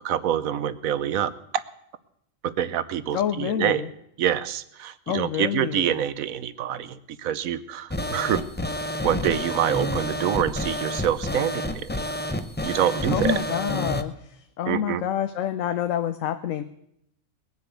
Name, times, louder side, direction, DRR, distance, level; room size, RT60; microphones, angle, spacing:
voice 1, 0.0-1.3 2.4-3.8 4.2-8.4 9.0-11.9 12.6-13.4 14.7-15.0, right 10 dB, 85° right, 14 dB, 1.2 m, -26 dB
voice 2, 3.1-3.9 5.1-5.9 13.1-14.1 14.6-16.6, left 9 dB, 75° left, 9 dB, 1.1 m, -27 dB
sound 1, 7.9-14.0, left 1 dB, 15° left, 0.3 m, -29 dB
20.0 x 6.9 x 8.1 m, 0.76 s
omnidirectional pair, 1.4 m